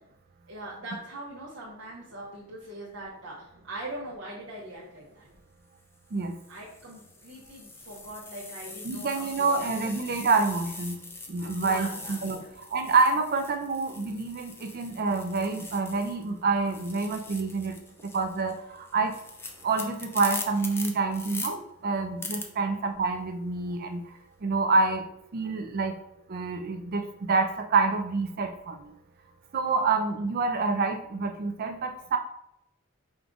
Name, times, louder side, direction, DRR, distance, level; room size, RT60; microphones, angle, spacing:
voice 1, 0.5-5.3 6.5-9.9 10.9-11.0 11.6-12.5 22.5-22.7, right 1 dB, 70° right, -7 dB, 0.9 m, -42 dB
sound 1, 5.1-5.4 6.1-16.3 16.6-21.5 22.2-22.4, left 3 dB, 10° left, 0.5 m, -42 dB
voice 2, 8.8-11.0 11.3-12.4 12.7-17.7 18.1-19.2 19.6-24.0 24.4-25.1 25.3-25.9 26.3-28.9 29.5-32.2, right 4 dB, 45° right, 6 dB, 0.4 m, -27 dB
5.1 x 2.3 x 3.8 m, 0.79 s
head